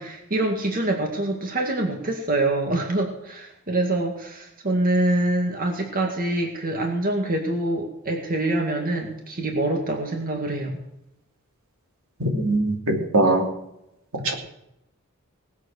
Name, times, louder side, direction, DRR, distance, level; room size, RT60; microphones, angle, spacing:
voice 1, 0.0-10.8, right 2 dB, 40° right, 2 dB, 2.1 m, -25 dB
voice 2, 12.2-13.5 14.2-14.3, right 2 dB, 75° right, 2 dB, 2.8 m, -21 dB
19.5 x 8.1 x 6.6 m, 0.85 s
head